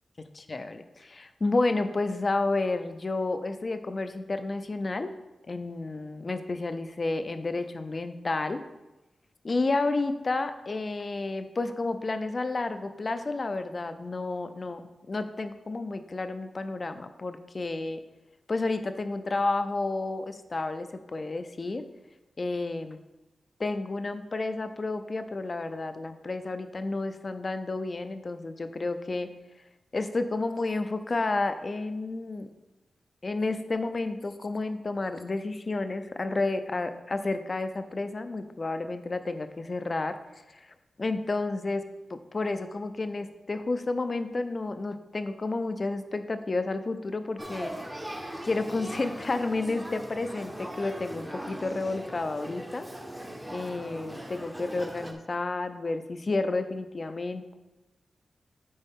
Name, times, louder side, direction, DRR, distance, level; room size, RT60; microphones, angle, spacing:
voice 1, 0.4-5.1 5.5-8.6 9.4-14.8 15.1-18.0 18.5-21.8 22.4-23.0 23.6-29.3 29.9-32.5 33.2-40.2 40.5-41.8 42.1-47.7 48.4-52.9 53.5-57.6, left 3 dB, 35° left, 9 dB, 0.4 m, -31 dB
Male speech man speaking / Child speech kid speaking / Conversation, 47.4-55.1, right 1 dB, 5° right, 0.7 m, -40 dB
9.5 x 4.5 x 3.6 m, 1.0 s
wide cardioid pair, 155°, 0 cm